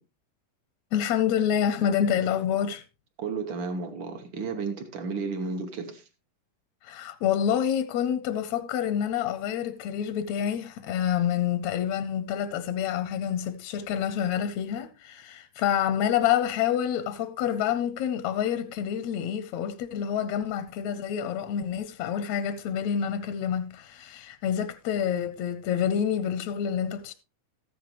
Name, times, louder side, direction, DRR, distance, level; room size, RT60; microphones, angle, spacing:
voice 1, 0.9-2.8 6.8-27.1, left 9 dB, 75° left, 1.7 m, -27 dB
voice 2, 3.2-6.1, right 4 dB, 80° right, 1.0 m, -33 dB
14.0 x 9.4 x 3.0 m
omnidirectional pair, 3.8 m